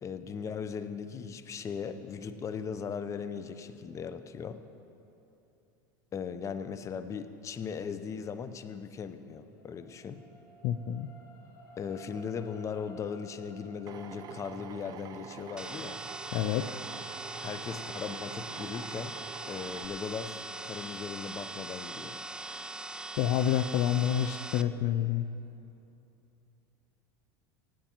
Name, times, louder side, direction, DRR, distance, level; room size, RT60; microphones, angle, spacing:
voice 1, 0.0-4.6 6.1-10.2 11.8-16.0 17.4-19.1 19.5-22.2, left 6 dB, 30° left, 10 dB, 0.8 m, -38 dB
sound 1, 8.9-21.3 21.8-21.9, right 1 dB, 85° left, 2.4 m, -57 dB
voice 2, 10.6-11.1 16.3-16.7 23.2-25.3, left 10 dB, 60° left, 11 dB, 0.6 m, -28 dB
Drill, 13.9-19.9, right 8 dB, 40° right, 0.8 m, -46 dB
sound 2, 15.6-24.6, right 2 dB, 10° right, 0.5 m, -41 dB
24.0 x 8.8 x 4.5 m, 2.8 s
supercardioid pair, 105°, 10 cm